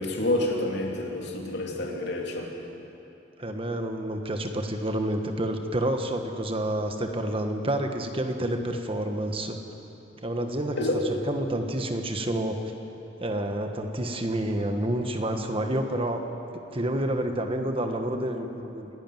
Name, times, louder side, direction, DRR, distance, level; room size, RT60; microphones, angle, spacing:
voice 1, 0.0-2.5 10.8-11.0, left 1 dB, 65° left, 0 dB, 2.9 m, -28 dB
voice 2, 3.4-9.6 10.2-12.6 13.2-16.3 16.5-18.9, right 1 dB, 30° right, 5 dB, 1.4 m, -29 dB
28.5 x 11.5 x 9.3 m, 3.0 s
head